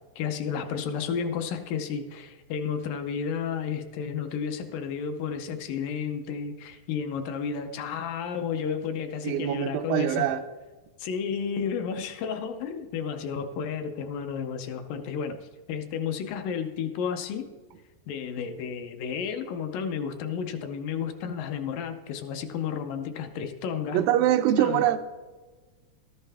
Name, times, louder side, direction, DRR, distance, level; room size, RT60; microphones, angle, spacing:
voice 1, 0.2-10.3 11.0-17.5 18.1-24.0 24.6-24.9, left 7 dB, 80° left, 2.3 m, -32 dB
voice 2, 9.2-10.4 23.9-25.0, right 11 dB, 85° right, 2.3 m, -23 dB
13.0 x 11.0 x 3.4 m
omnidirectional pair, 4.1 m